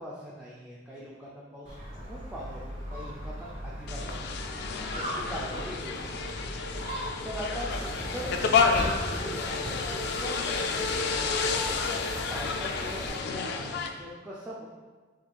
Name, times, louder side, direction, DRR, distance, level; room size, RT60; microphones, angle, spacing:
voice 1, 0.0-4.3 4.9-6.3 7.2-11.6 12.3-14.7, equal, 10° right, -7 dB, 0.4 m, -41 dB
Gull seagull, 1.6-13.1, equal, 40° right, 1.5 m, -39 dB
sound 1, 3.9-13.9, left 5 dB, 60° left, 0.3 m, -30 dB
sound 2, 7.7-13.2, left 1 dB, 15° left, 1.0 m, -40 dB
7.1 x 2.5 x 2.3 m, 1.4 s
head